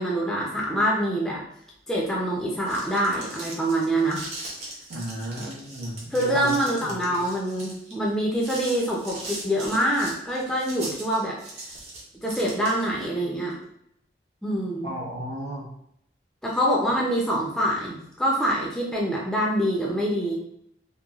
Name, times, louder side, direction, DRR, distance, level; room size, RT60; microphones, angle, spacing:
voice 1, 0.0-1.4 1.9-4.3 6.1-11.4 12.2-13.6 14.4-14.9 16.4-20.4, right 1 dB, 5° left, -4 dB, 0.4 m, -25 dB
sound 1, 2.4-13.0, right 2 dB, 40° right, 0.6 m, -40 dB
voice 2, 4.9-6.5 14.8-15.7, equal, 90° right, -3 dB, 0.7 m, -34 dB
3.0 x 2.2 x 2.3 m, 0.73 s
head